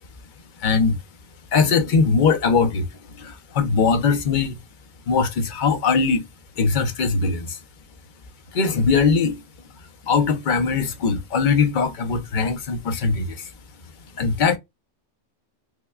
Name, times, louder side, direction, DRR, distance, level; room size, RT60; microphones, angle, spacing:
voice 1, 0.6-1.0 1.5-2.9 3.2-4.6 5.1-6.2 6.6-7.6 8.5-9.4 10.0-13.5 14.2-14.6, left 5 dB, 50° left, 0.7 m, -20 dB
4.8 x 2.2 x 2.3 m
omnidirectional pair, 1.3 m